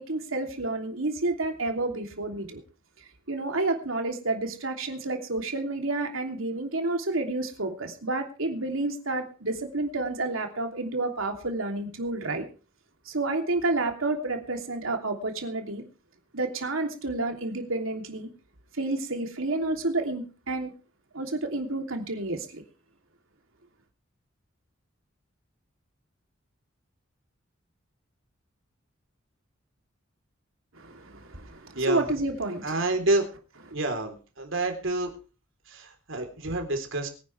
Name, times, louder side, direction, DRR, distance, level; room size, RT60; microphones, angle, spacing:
voice 1, 0.0-2.6 3.0-12.5 13.0-15.8 16.3-18.3 18.7-20.7 21.1-22.6 30.7-32.8, right 2 dB, 90° right, 4 dB, 3.1 m, -30 dB
voice 2, 32.6-33.2 33.7-35.1 35.7-37.1, right 2 dB, 70° right, 5 dB, 3.8 m, -28 dB
23.5 x 10.0 x 3.4 m, 0.36 s
head